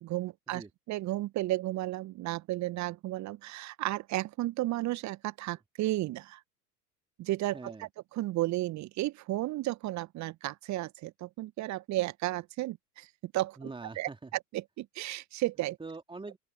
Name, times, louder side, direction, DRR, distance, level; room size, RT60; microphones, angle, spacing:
voice 1, 0.0-6.4 7.2-7.9 8.2-13.6 14.0-14.1 14.5-15.8, right 16 dB, 35° right, 1.7 m, -33 dB
voice 2, 7.5-7.9 13.6-14.3 15.8-16.4, right 3 dB, 10° right, 2.7 m, -43 dB
open air
figure-of-eight pair, 80°, 49 cm